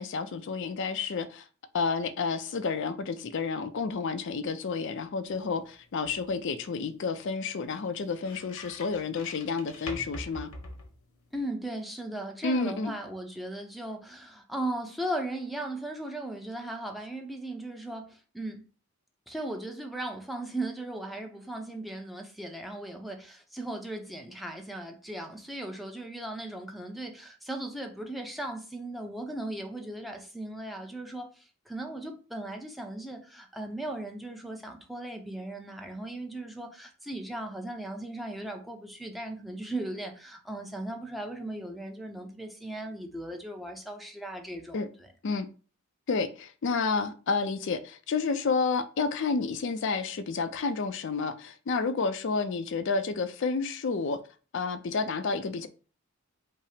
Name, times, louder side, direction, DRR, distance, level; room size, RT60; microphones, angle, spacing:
voice 1, 0.0-1.5 1.7-10.5 12.4-12.9 44.7-44.9 45.2-45.5 46.1-54.2 54.5-55.7, left 4 dB, 55° left, 0.4 m, -30 dB
sound 1, 5.3-11.5, left 2 dB, 80° left, 1.0 m, -46 dB
voice 2, 11.3-18.6 19.3-45.1, right 1 dB, ahead, 0.5 m, -37 dB
5.4 x 2.0 x 4.9 m
head